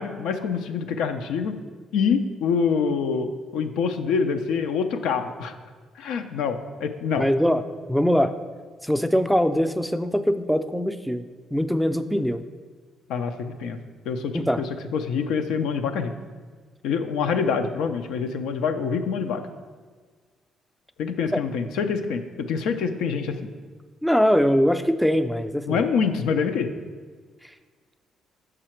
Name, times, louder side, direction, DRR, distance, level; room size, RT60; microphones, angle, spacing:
voice 1, 0.0-1.6 1.9-5.5 6.0-7.3 13.1-13.8 14.0-16.1 16.8-19.5 21.0-23.5 25.7-26.7, left 6 dB, 90° left, 7 dB, 0.5 m, -26 dB
voice 2, 7.2-7.6 7.9-8.3 8.8-11.2 11.5-12.4 14.3-14.6 24.0-25.8, equal, ahead, 10 dB, 0.3 m, -22 dB
6.4 x 4.9 x 4.4 m, 1.5 s
cardioid pair, 95°, 0 cm